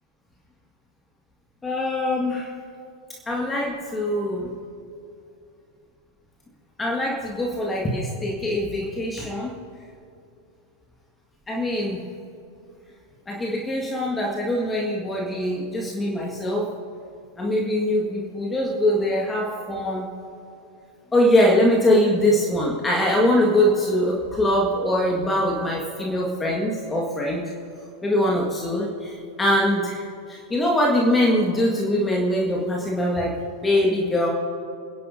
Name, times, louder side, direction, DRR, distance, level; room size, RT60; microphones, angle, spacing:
voice 1, 1.6-2.5 3.3-4.5 6.8-9.5 11.5-12.0 13.3-16.7 17.4-20.1 21.1-27.4 28.0-33.4 33.6-34.3, left 1 dB, 15° left, -2 dB, 1.7 m, -22 dB
27.5 x 11.0 x 2.7 m, 2.5 s
figure-of-eight pair, 90°, 0 cm